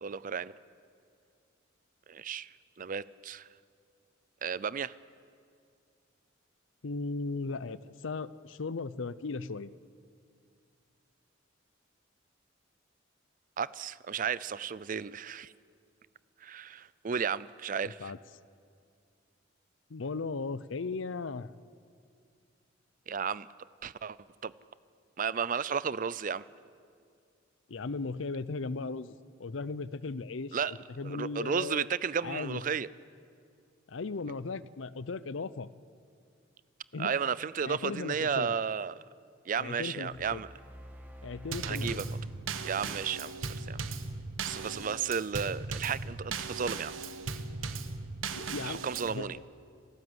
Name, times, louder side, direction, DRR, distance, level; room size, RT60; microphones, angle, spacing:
voice 1, 0.0-0.5 2.1-3.5 4.4-4.9 13.6-15.5 16.4-18.1 23.1-23.5 23.8-24.2 24.4-24.5 25.2-26.4 30.5-30.7 31.0-32.9 37.0-39.0 39.5-40.5 41.7-42.0 42.6-43.8 44.4-46.9 48.6-49.4, right 6 dB, 45° right, 19 dB, 0.5 m, -33 dB
voice 2, 6.8-9.7 17.8-18.2 19.9-21.5 27.7-29.1 29.4-31.9 32.2-32.6 33.9-35.7 36.9-37.1 37.6-38.5 39.6-40.4 41.2-42.2 48.3-49.4, left 4 dB, 75° left, 17 dB, 0.6 m, -37 dB
sound 1, 40.1-43.4, equal, 10° right, 1.9 m, -50 dB
Drum kit / Snare drum / Bass drum, 41.5-49.2, right 4 dB, 85° right, 1.2 m, -38 dB
29.0 x 13.0 x 8.0 m, 2.3 s
head